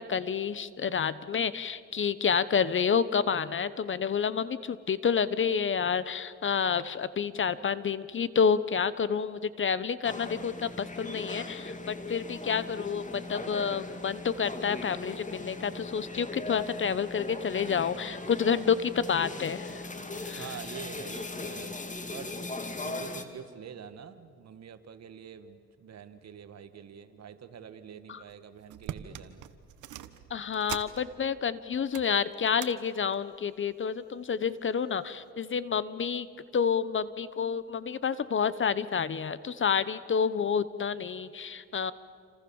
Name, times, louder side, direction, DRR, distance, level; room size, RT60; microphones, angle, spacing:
voice 1, 0.0-19.8 20.2-20.4 28.1-28.2 30.3-36.3 36.5-41.9, left 6 dB, 40° left, 16 dB, 1.1 m, -29 dB
sound 1, 10.0-23.2, left 3 dB, 25° left, 2.5 m, -39 dB
voice 2, 20.4-21.8 22.1-29.5, right 7 dB, 60° right, 10 dB, 1.8 m, -46 dB
sound 2, 28.2-28.3 28.6-31.4 31.7-32.7 33.1-33.4 34.2-34.7 35.2-35.3, right 11 dB, 80° right, 1.3 m, -43 dB
28.5 x 26.5 x 7.2 m, 2.2 s
cardioid pair, 90°, 30 cm